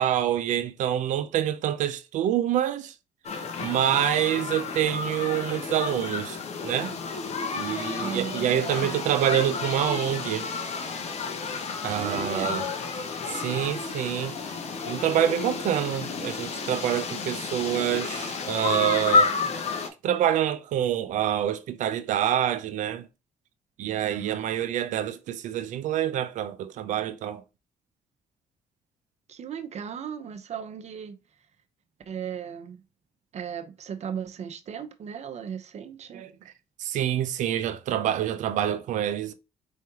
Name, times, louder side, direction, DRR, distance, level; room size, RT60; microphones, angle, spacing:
voice 1, 0.0-2.9 3.6-6.4 6.6-6.9 7.6-10.5 11.8-12.6 13.3-14.4 14.9-19.3 20.0-23.1 23.8-27.4 36.1-36.3 36.8-39.3, right 10 dB, 80° right, 0.6 m, -26 dB
sound 1, 3.2-19.9, left 4 dB, 60° left, 0.9 m, -31 dB
voice 2, 8.0-9.0 11.9-12.6 24.0-24.6 29.3-31.2 32.1-32.8 33.3-36.2, right 7 dB, 60° right, 0.9 m, -36 dB
4.7 x 3.3 x 2.9 m
supercardioid pair, 65°, 13 cm